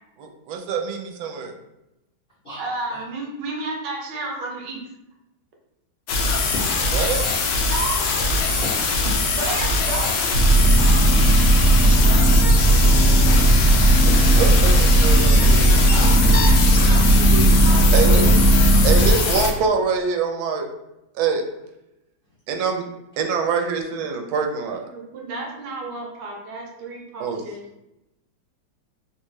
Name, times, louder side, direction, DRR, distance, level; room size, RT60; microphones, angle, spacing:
voice 1, 0.2-1.5 6.9-7.4 12.5-12.6 14.0-15.9 17.9-18.2 18.8-20.7 21.1-21.4 22.5-22.8 23.2-24.8 27.2-27.4, right 5 dB, 85° right, 4 dB, 1.4 m, -25 dB
voice 2, 2.6-4.8 7.7-8.0 9.3-10.4 15.9-16.5 16.9-18.0 24.2-24.3 24.9-27.8, right 3 dB, 70° right, -1 dB, 1.2 m, -32 dB
sound 1, 6.1-19.5, left 4 dB, 75° left, 1.1 m, -23 dB
voice 3, 6.2-7.3 8.6-9.4, left 1 dB, 50° left, -9 dB, 0.6 m, -35 dB
sound 2, 10.3-19.1, right 1 dB, 45° right, 0.9 m, -15 dB
3.9 x 2.2 x 3.1 m, 0.91 s
omnidirectional pair, 2.2 m